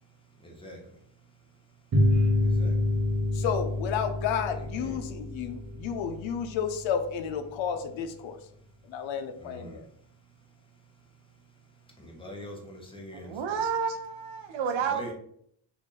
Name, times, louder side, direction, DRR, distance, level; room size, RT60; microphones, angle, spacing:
voice 1, 0.4-0.8 2.6-2.7 4.6-5.0 9.4-9.8 12.0-13.6 14.9-15.1, left 1 dB, 10° left, -1 dB, 0.8 m, -43 dB
sound 1, 1.9-7.0, left 1 dB, 35° right, 0.8 m, -27 dB
voice 2, 3.3-8.4 8.9-9.8, left 7 dB, 80° left, 8 dB, 0.6 m, -31 dB
voice 3, 13.1-15.1, right 6 dB, 80° right, 6 dB, 0.7 m, -30 dB
3.0 x 2.5 x 3.7 m, 0.66 s
cardioid pair, 120°, 46 cm